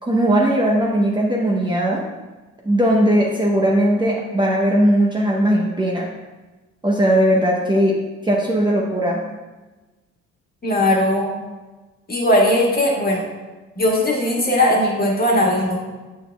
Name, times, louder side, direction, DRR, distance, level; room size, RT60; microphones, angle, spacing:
voice 1, 0.0-2.0 2.6-6.1 6.8-8.0 8.2-9.2, right 1 dB, 15° right, -3 dB, 0.9 m, -18 dB
voice 2, 10.6-11.3 12.1-13.2 13.8-15.8, left 1 dB, 30° left, -2 dB, 1.7 m, -18 dB
7.4 x 6.5 x 2.3 m, 1.2 s
cardioid pair, 90°, 30 cm